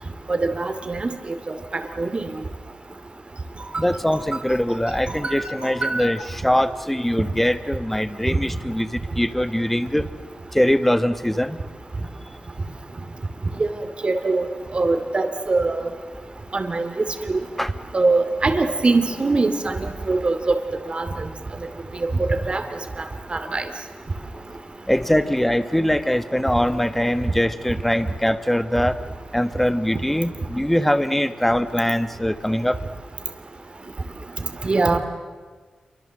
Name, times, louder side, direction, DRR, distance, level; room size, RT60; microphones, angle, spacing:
voice 1, 0.3-1.1 1.5-2.3 3.6-3.7 4.1-4.2 5.1-6.0 13.6-13.7 14.0-14.5 14.7-15.9 16.5-16.9 17.3-17.4 17.9-20.6 20.9-21.3 22.0-22.6 23.3-23.6 34.6-35.0, right 3 dB, 45° right, 7 dB, 2.6 m, -22 dB
voice 2, 3.8-8.9 9.2-10.0 10.5-11.6 17.6-17.7 24.9-28.9 29.3-32.8, equal, 5° left, 12 dB, 1.4 m, -22 dB
28.0 x 24.5 x 7.7 m, 1.5 s
cardioid pair, 75°, 3 cm